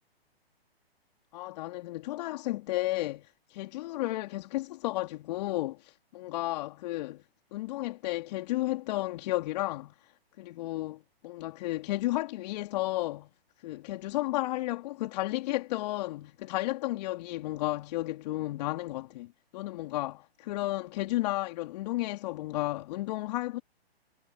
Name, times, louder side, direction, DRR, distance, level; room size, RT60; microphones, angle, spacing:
voice 1, 1.3-7.2 7.5-13.3 13.6-23.6, left 17 dB, 40° left, 2.8 m, -33 dB
hypercardioid pair, 135°, 31 cm